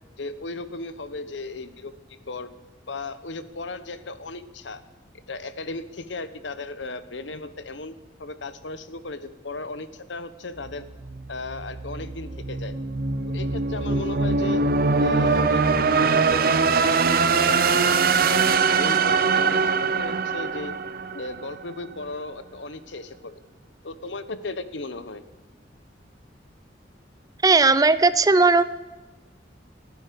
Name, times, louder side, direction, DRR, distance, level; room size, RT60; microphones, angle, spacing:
voice 1, 0.2-1.9 2.3-2.5 2.9-4.8 5.3-10.8 11.3-12.8 13.3-14.6 15.0-16.6 17.0-18.0 18.3-20.7 21.1-23.4 23.8-25.2, left 2 dB, 90° left, 12 dB, 1.1 m, -35 dB
sound 1, 10.6-21.6, right 4 dB, 55° right, 0.7 m, -22 dB
voice 2, 27.4-28.6, right 3 dB, 20° right, 14 dB, 0.5 m, -17 dB
28.5 x 9.6 x 5.2 m, 1.2 s
head